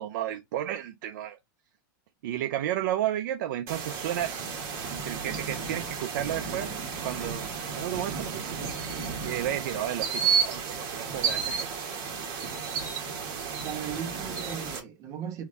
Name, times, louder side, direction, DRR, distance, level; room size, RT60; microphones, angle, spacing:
voice 1, 0.0-1.4 2.2-4.5 5.0-6.7 7.0-7.5 7.7-8.6 9.2-11.7, right 12 dB, 65° right, 0.4 m, -32 dB
sound 1, 3.7-14.8, right 6 dB, 45° right, 1.4 m, -32 dB
voice 2, 13.5-15.4, right 8 dB, 30° right, 0.9 m, -37 dB
3.5 x 2.7 x 3.1 m
supercardioid pair, 150°, 11 cm